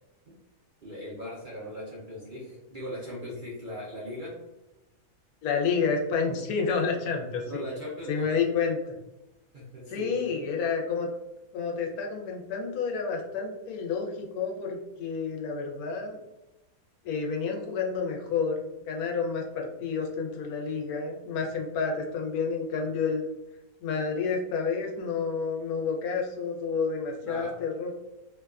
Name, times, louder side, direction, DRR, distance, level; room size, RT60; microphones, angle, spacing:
voice 1, 0.8-4.4 7.4-8.3 9.5-10.1 27.2-27.6, left 1 dB, 50° right, -6 dB, 0.6 m, -39 dB
voice 2, 5.4-7.6 8.1-8.9 9.9-11.1 11.5-16.2 17.0-23.2 23.8-27.9, left 5 dB, 85° left, 1 dB, 1.1 m, -30 dB
2.9 x 2.2 x 2.3 m, 0.99 s
omnidirectional pair, 1.5 m